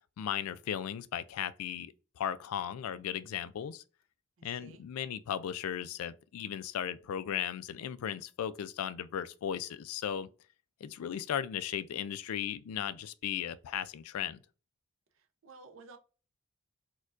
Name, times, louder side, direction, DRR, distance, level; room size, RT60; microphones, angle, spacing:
voice 1, 0.2-3.8 4.4-10.3 10.8-14.4, left 9 dB, 90° left, 0.3 m, -36 dB
voice 2, 4.4-4.8 15.1-16.0, right 3 dB, 65° right, 0.5 m, -54 dB
4.3 x 2.3 x 2.4 m
head